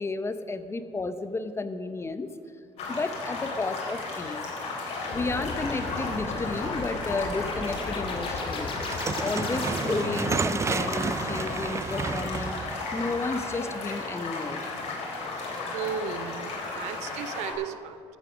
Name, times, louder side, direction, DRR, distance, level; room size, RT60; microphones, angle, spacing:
voice 1, 0.0-2.3 2.9-4.4 5.1-8.8 9.2-14.6, left 3 dB, 25° left, 11 dB, 0.8 m, -32 dB
sound 1, 2.8-17.5, left 3 dB, 70° left, 3.6 m, -34 dB
sound 2, 5.1-10.3, left 3 dB, 50° left, 2.4 m, -35 dB
sound 3, 8.7-13.9, right 5 dB, 25° right, 0.4 m, -31 dB
voice 2, 15.7-18.0, right 8 dB, 85° right, 13 dB, 0.7 m, -35 dB
13.5 x 8.8 x 6.2 m, 2.3 s
cardioid pair, 95°, 11 cm